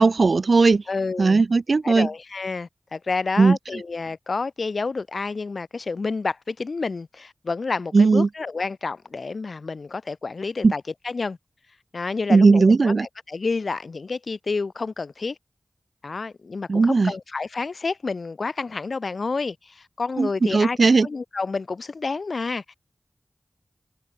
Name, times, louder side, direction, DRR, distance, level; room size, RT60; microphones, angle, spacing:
voice 1, 0.0-0.8 1.2-2.1 3.4-3.6 7.9-8.3 10.6-10.7 12.3-13.1 16.7-17.1 20.2-21.1, right 4 dB, 75° right, 3.8 m, -17 dB
voice 2, 0.9-1.4 1.8-11.4 11.9-15.4 16.0-20.8 21.0-22.7, left 4 dB, 75° left, 5.4 m, -29 dB
wide cardioid pair, 65°, 0 cm